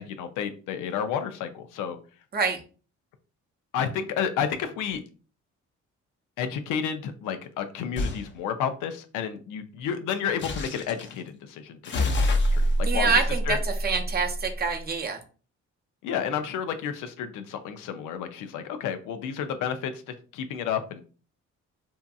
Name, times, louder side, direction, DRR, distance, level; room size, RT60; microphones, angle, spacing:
voice 1, 0.0-2.0 3.7-5.0 6.4-13.2 13.5-13.6 16.0-21.0, left 8 dB, 90° left, 8 dB, 0.5 m, -31 dB
sound 1, 8.0-8.2 10.4-11.1 11.8-14.5, equal, 40° left, 0.5 m, -26 dB
voice 2, 12.8-13.6 13.8-15.2, right 5 dB, 30° right, 3 dB, 0.6 m, -26 dB
2.7 x 2.5 x 2.3 m, 0.37 s
cardioid pair, 90°, 30 cm